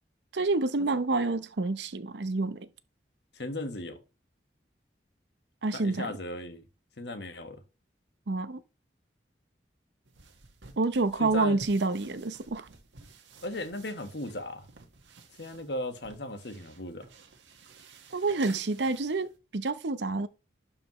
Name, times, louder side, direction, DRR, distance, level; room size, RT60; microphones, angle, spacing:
voice 1, 0.3-2.7 5.6-6.2 8.3-8.6 10.8-12.7 18.1-20.3, right 3 dB, 70° right, 0.7 m, -28 dB
voice 2, 3.3-4.0 5.7-6.7 7.0-7.6 11.2-11.7 13.4-14.7 15.4-17.1, left 1 dB, 70° left, 1.4 m, -36 dB
sound 1, 10.1-19.4, right 3 dB, 90° right, 1.6 m, -52 dB
11.5 x 5.1 x 3.1 m
head